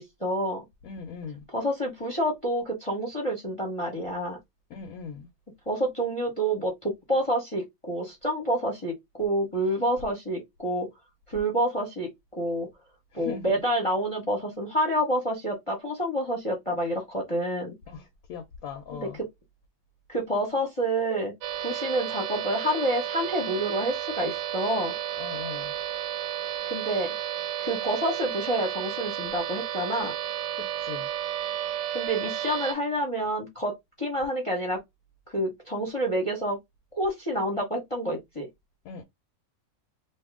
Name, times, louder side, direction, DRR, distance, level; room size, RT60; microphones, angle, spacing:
voice 1, 0.0-0.6 1.5-4.4 5.7-10.9 11.3-12.7 13.1-17.7 18.9-19.1 20.1-21.3 21.6-24.9 26.7-27.1 27.6-30.1 31.9-34.8 35.3-36.6 36.9-38.5, right 1 dB, 25° left, 0.7 m, -28 dB
voice 2, 0.8-1.4 4.7-5.3 13.1-13.5 17.9-19.2 25.2-25.7 30.6-31.1 38.8-39.0, left 6 dB, 65° left, 0.9 m, -40 dB
sound 1, 21.4-32.7, right 11 dB, 75° right, 1.2 m, -32 dB
2.8 x 2.6 x 3.5 m
omnidirectional pair, 2.0 m